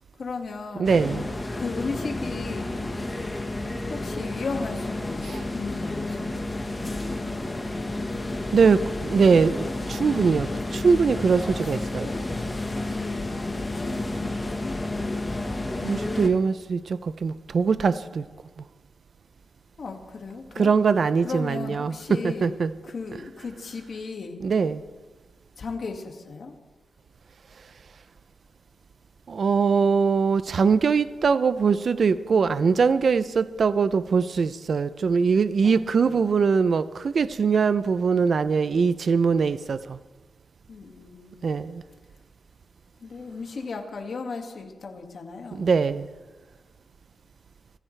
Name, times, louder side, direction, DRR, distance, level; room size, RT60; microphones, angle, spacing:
voice 1, 0.2-1.0 1.6-2.8 3.9-6.4 11.6-11.8 12.0-12.2 12.5-14.8 19.8-20.7 21.2-22.6 22.8-24.4 25.6-26.5 35.6-36.4 40.7-41.7 43.0-45.7, left 4 dB, 45° left, 1.9 m, -36 dB
sound 1, 0.8-16.3, left 2 dB, 15° left, 1.3 m, -31 dB
voice 2, 0.8-1.3 5.2-5.4 8.5-12.1 15.8-18.2 20.6-22.7 24.4-24.8 29.3-40.0 41.4-41.8 45.5-46.1, right 5 dB, 45° right, 0.4 m, -22 dB
25.5 x 15.0 x 3.3 m
wide cardioid pair, 180°, 0 cm